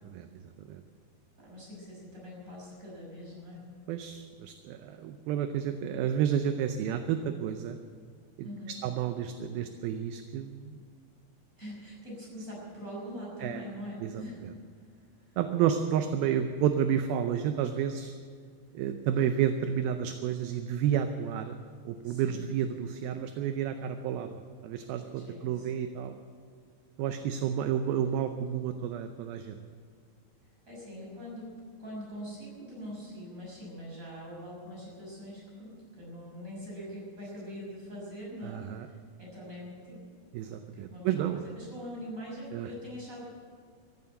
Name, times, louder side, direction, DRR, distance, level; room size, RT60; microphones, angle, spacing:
voice 1, 1.4-3.6 8.4-8.7 11.6-14.4 22.0-22.4 25.1-25.7 30.7-31.5 31.8-38.6 39.2-40.0 40.4-43.2, equal, 20° right, -4 dB, 6.1 m, -43 dB
voice 2, 3.9-7.8 8.4-8.5 8.8-10.8 13.4-13.7 14.0-14.5 15.4-18.1 18.7-21.6 21.9-26.1 27.0-29.6 38.4-38.9 40.3-41.5 42.5-42.7, right 9 dB, 80° right, 8 dB, 2.3 m, -31 dB
14.5 x 11.0 x 8.8 m, 2.1 s
omnidirectional pair, 4.8 m